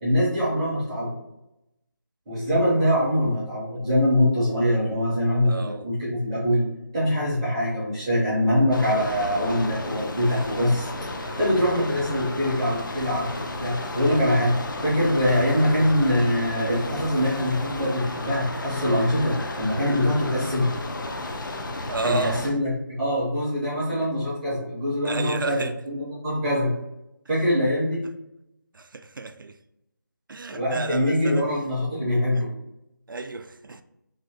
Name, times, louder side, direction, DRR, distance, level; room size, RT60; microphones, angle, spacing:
voice 1, 0.0-1.1 2.3-6.6 6.9-10.9 11.2-20.7 22.0-22.7 23.0-26.7 27.3-28.0 30.5-32.5, equal, 15° right, 0.6 m, -23 dB
voice 2, 5.5-5.9 10.3-10.4 11.2-11.4 21.9-22.5 23.7-24.0 25.0-25.7 28.7-29.6 30.3-31.4 32.4-32.5 33.1-33.8, right 3 dB, 80° right, 0.4 m, -32 dB
sound 1, 8.7-22.5, left 2 dB, 70° left, 0.5 m, -33 dB
2.7 x 2.5 x 3.3 m
figure-of-eight pair, 165°, 11 cm